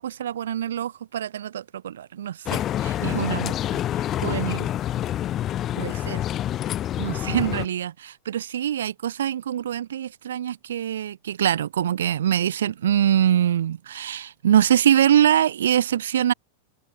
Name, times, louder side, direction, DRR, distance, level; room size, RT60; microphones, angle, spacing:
voice 1, 0.0-3.8 4.2-4.7 5.8-6.2 7.0-16.3, right 10 dB, 65° right, 1.1 m, -24 dB
sound 1, 2.5-7.7, left 12 dB, 30° left, 1.1 m, -27 dB
figure-of-eight pair, 90°, 0 cm